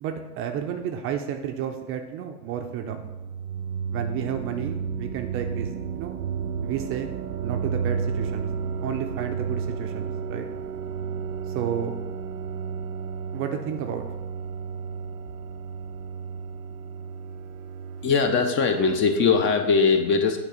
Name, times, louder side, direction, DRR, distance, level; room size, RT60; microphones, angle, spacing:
voice 1, 0.0-3.0 3.9-6.2 6.6-7.1 7.4-8.5 8.8-10.5 11.5-11.9 13.3-14.1, right 9 dB, 30° right, 5 dB, 0.5 m, -31 dB
sound 1, 2.4-19.2, right 6 dB, 80° right, 0.5 m, -32 dB
voice 2, 18.0-20.4, left 5 dB, 25° left, 6 dB, 0.5 m, -21 dB
8.2 x 3.2 x 5.0 m, 1.1 s
hypercardioid pair, 90°, 47 cm